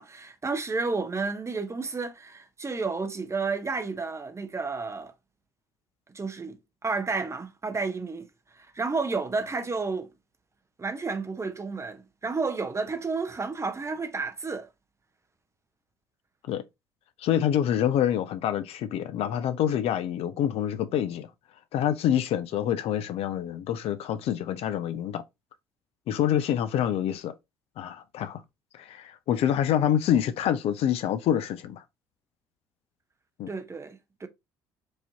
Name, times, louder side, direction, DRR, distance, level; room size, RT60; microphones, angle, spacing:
voice 1, 0.0-5.1 6.1-8.3 8.5-10.1 10.8-14.7 33.5-34.3, right 4 dB, 25° right, 0.7 m, -31 dB
voice 2, 17.2-21.3 21.7-25.2 26.1-27.3 27.8-28.4 28.8-31.8 33.4-33.5, left 10 dB, 55° left, 0.5 m, -26 dB
4.7 x 2.7 x 2.7 m
figure-of-eight pair, 50°, 12 cm